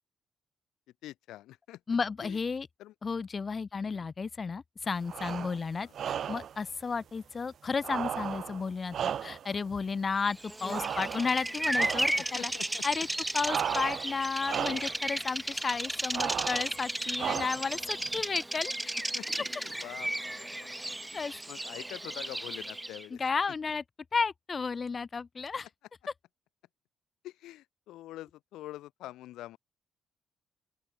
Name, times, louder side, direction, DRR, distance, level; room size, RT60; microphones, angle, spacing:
voice 1, 1.0-2.4 2.8-2.9 3.9-4.1 5.8-5.9 12.2-13.0 19.1-20.7 21.1-23.2 27.2-29.6, left 15 dB, 90° left, 2.0 m, -46 dB
voice 2, 1.9-2.7 3.0-12.5 12.8-13.1 13.3-18.9 21.1-21.3 23.1-23.8 24.1-25.7, left 5 dB, 35° left, 0.7 m, -33 dB
sound 1, 5.1-5.6 5.9-6.6 7.8-9.6 10.7-11.4 11.7-12.3 13.4-14.2 14.4-15.0 16.1-16.7 17.2-17.8, right 9 dB, 60° right, 1.4 m, -35 dB
Bird vocalization bird call bird song, 10.4-23.1, right 1 dB, 10° right, 1.1 m, -34 dB
open air
cardioid pair, 90°, 0 cm